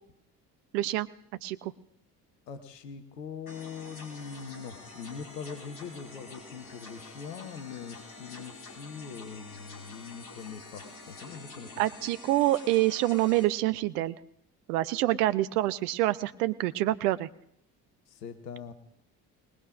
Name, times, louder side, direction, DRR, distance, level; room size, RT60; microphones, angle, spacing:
voice 1, 0.7-1.1 1.4-1.7 11.8-14.1 14.7-17.3, right 16 dB, 65° right, 15 dB, 0.7 m, -26 dB
voice 2, 2.5-11.8 18.1-18.7, left 6 dB, 80° left, 9 dB, 1.1 m, -42 dB
sound 1, 3.5-13.5, left 3 dB, 45° left, 4.9 m, -47 dB
25.5 x 20.0 x 2.5 m, 0.76 s
figure-of-eight pair, 55°, 49 cm